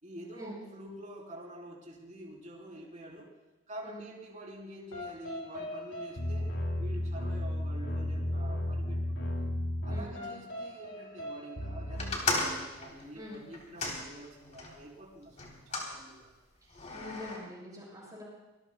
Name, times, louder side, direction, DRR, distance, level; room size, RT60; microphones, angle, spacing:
voice 1, 0.0-3.3 3.7-6.5 6.8-9.3 9.8-16.3, right 1 dB, 40° right, -2 dB, 3.8 m, -47 dB
sound 1, 4.9-12.2, left 1 dB, 85° left, 5.6 m, -35 dB
voice 2, 9.9-10.3 13.1-13.4 16.6-18.2, left 1 dB, 20° right, -4 dB, 6.8 m, -45 dB
sound 2, 12.0-14.7 15.4-15.9 16.7-17.4, left 3 dB, 35° left, 3.4 m, -35 dB
25.5 x 20.0 x 2.3 m, 1.1 s
head